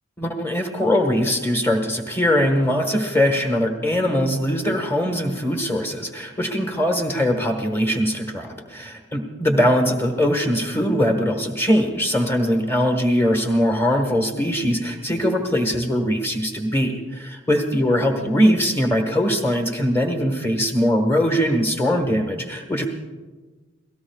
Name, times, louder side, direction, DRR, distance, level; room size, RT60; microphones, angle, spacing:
voice 1, 0.2-22.9, equal, 10° left, 4 dB, 1.4 m, -21 dB
29.5 x 18.0 x 2.4 m, 1.3 s
head